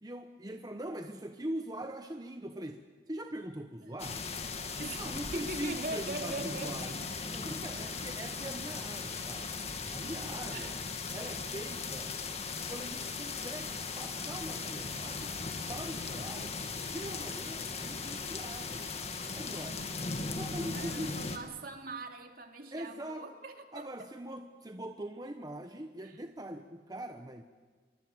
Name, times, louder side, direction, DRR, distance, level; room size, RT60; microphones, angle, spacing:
voice 1, 0.0-4.3 5.0-7.0 7.3-9.6 9.9-10.7 11.1-12.2 12.7-15.3 15.7-16.6 16.8-18.9 19.3-19.9 20.2-21.2 22.7-23.3 23.7-27.4, right 1 dB, 20° right, 6 dB, 1.0 m, -42 dB
sound 1, 4.0-21.4, left 4 dB, 35° left, 1.9 m, -38 dB
voice 2, 4.8-7.1 7.7-8.0 10.0-10.7 20.7-24.1 26.0-26.1, right 2 dB, 55° right, 4 dB, 2.4 m, -42 dB
25.5 x 23.0 x 7.9 m, 1.4 s
head